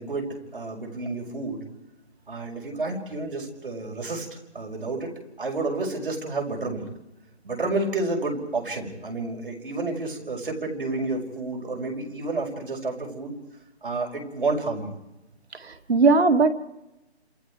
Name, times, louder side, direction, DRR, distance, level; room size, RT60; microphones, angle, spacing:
voice 1, 0.0-1.7 2.3-4.3 4.5-5.1 5.4-6.9 7.4-13.4 13.8-15.0, right 3 dB, 55° right, 1 dB, 5.4 m, -30 dB
voice 2, 15.6-16.5, right 4 dB, 70° right, 6 dB, 2.0 m, -19 dB
29.0 x 27.5 x 4.7 m, 0.94 s
hypercardioid pair, 180°, 33 cm